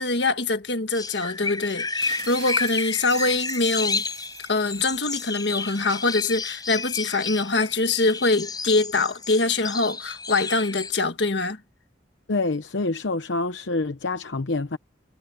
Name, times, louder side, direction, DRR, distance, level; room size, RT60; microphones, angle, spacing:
voice 1, 0.0-4.0 4.5-11.6, left 3 dB, 65° left, 1.6 m, -24 dB
sound 1, 0.9-10.9, left 4 dB, 20° left, 5.1 m, -31 dB
sound 2, 2.0-6.7, right 11 dB, 60° right, 2.9 m, -44 dB
voice 2, 12.3-14.8, left 3 dB, 85° left, 0.9 m, -26 dB
head